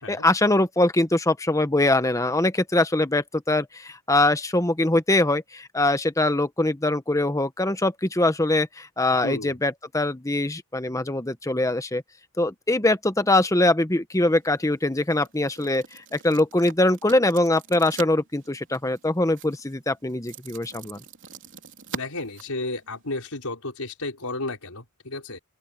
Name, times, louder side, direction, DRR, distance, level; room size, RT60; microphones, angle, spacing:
voice 1, 0.1-12.0 12.4-15.8 16.1-21.0, left 2 dB, 15° left, 0.9 m, -23 dB
voice 2, 9.2-9.6 21.9-25.4, left 2 dB, 80° left, 5.0 m, -33 dB
sound 1, 14.1-23.2, right 5 dB, 55° right, 3.5 m, -44 dB
open air
head